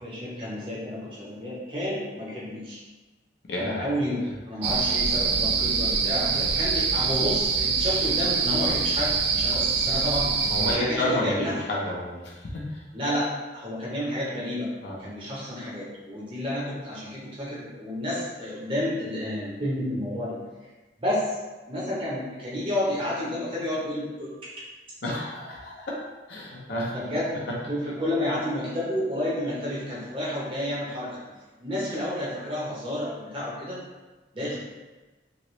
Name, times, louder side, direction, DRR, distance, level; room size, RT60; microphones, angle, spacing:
voice 1, 0.0-2.8 3.6-10.3 10.6-11.6 12.9-14.7 15.0-20.4 21.0-21.4 21.7-24.5 26.9-27.4 27.7-31.3 31.6-33.8 34.3-34.6, left 1 dB, 30° right, -7 dB, 0.6 m, -30 dB
voice 2, 3.5-3.9 10.5-12.8 14.8-15.0 25.0-26.0 26.3-26.9 27.5-27.6, left 1 dB, 70° left, -3 dB, 0.6 m, -30 dB
sound 1, 4.6-10.8, right 5 dB, 65° right, 0.3 m, -24 dB
3.0 x 2.8 x 3.0 m, 1.2 s
head